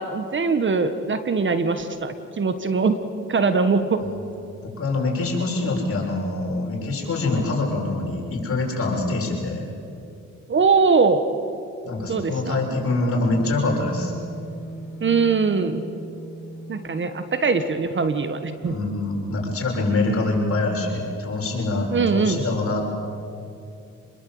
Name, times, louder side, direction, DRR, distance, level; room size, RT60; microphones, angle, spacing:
voice 1, 0.0-3.0 3.3-4.0 10.5-11.2 12.1-12.6 15.0-15.8 16.7-18.7 21.9-22.4, right 4 dB, 40° right, 10 dB, 1.6 m, -21 dB
voice 2, 4.6-9.6 11.8-14.1 17.3-17.4 18.6-22.8, left 2 dB, 50° left, -1 dB, 7.1 m, -25 dB
sound 1, 13.2-17.1, right 2 dB, 85° left, 3.8 m, -38 dB
26.0 x 22.0 x 8.0 m, 2.6 s
cardioid pair, 90°, 30 cm